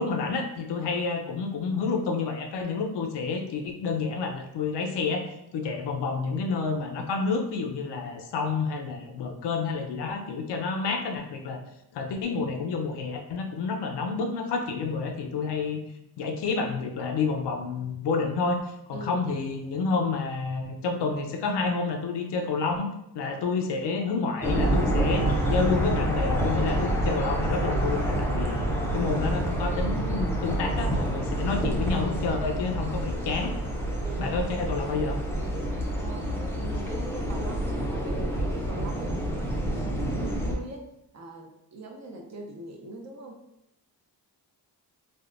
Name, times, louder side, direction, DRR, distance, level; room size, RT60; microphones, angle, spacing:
voice 1, 0.0-11.6 11.9-15.8 16.2-33.5 34.2-35.2, left 4 dB, 75° left, 4 dB, 0.6 m, -29 dB
voice 2, 18.9-19.2 34.0-34.5 36.0-40.9 41.1-43.4, right 2 dB, 40° right, 1 dB, 0.5 m, -42 dB
sound 1, 24.4-40.5, right 1 dB, 5° left, 0.4 m, -28 dB
3.5 x 2.1 x 2.4 m, 0.82 s
wide cardioid pair, 125°, 42 cm